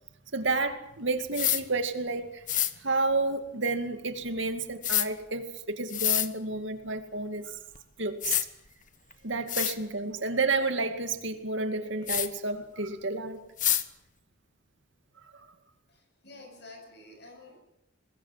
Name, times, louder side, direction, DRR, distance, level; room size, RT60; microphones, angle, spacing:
voice 1, 0.3-2.4 2.8-7.6 8.0-8.4 9.2-13.4 15.3-15.5, right 3 dB, 70° right, 7 dB, 2.3 m, -30 dB
sound 1, 1.3-1.6 2.5-2.7 4.8-5.1 5.9-6.3 7.7-7.8 8.2-8.5 9.1-9.2 9.5-9.8 12.1-12.3 13.6-13.8, left 12 dB, 40° left, 1.2 m, -26 dB
voice 2, 15.9-17.6, left 2 dB, 55° left, 5 dB, 7.2 m, -50 dB
23.5 x 20.5 x 7.5 m, 0.80 s
head